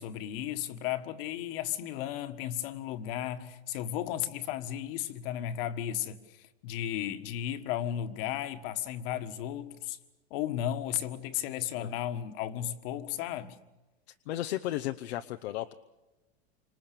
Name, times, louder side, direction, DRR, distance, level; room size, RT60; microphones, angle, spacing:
voice 1, 0.0-10.0 10.3-13.6, left 11 dB, 55° left, 1.7 m, -34 dB
voice 2, 14.3-15.7, left 14 dB, 75° left, 0.9 m, -34 dB
27.5 x 26.0 x 6.9 m
supercardioid pair, 130°, 33 cm